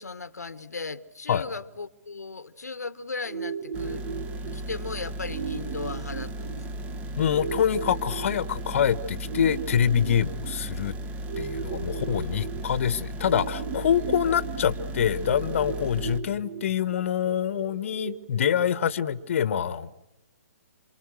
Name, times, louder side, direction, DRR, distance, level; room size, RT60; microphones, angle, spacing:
voice 1, 0.0-4.1 4.5-6.5 11.8-12.5 14.2-14.3, left 4 dB, 85° left, 1.4 m, -37 dB
sound 1, 3.2-19.2, right 7 dB, 45° right, 1.1 m, -38 dB
sound 2, 3.7-16.2, right 1 dB, 15° right, 1.6 m, -36 dB
voice 2, 7.2-10.9 11.4-20.0, left 8 dB, 55° left, 1.4 m, -25 dB
29.0 x 27.0 x 6.4 m
hypercardioid pair, 140°, 9 cm